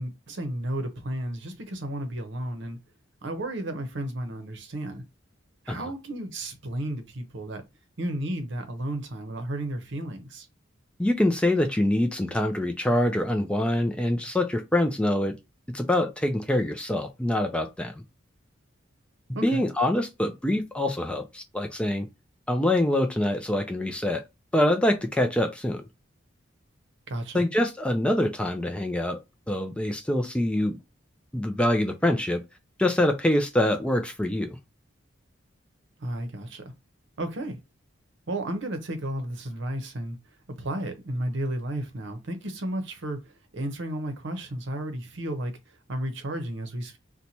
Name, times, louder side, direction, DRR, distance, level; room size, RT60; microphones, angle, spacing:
voice 1, 0.0-2.8 3.2-5.0 5.6-7.6 8.0-10.5 19.3-19.7 27.1-27.4 36.0-36.7 37.2-37.6 38.3-40.2 40.6-47.0, right 1 dB, 60° right, 0.7 m, -33 dB
voice 2, 11.0-15.3 15.7-18.0 19.4-22.1 22.5-24.2 24.5-25.8 27.3-29.2 29.5-30.8 31.3-32.4 32.8-34.6, left 1 dB, 5° left, 0.3 m, -25 dB
2.9 x 2.2 x 4.0 m
head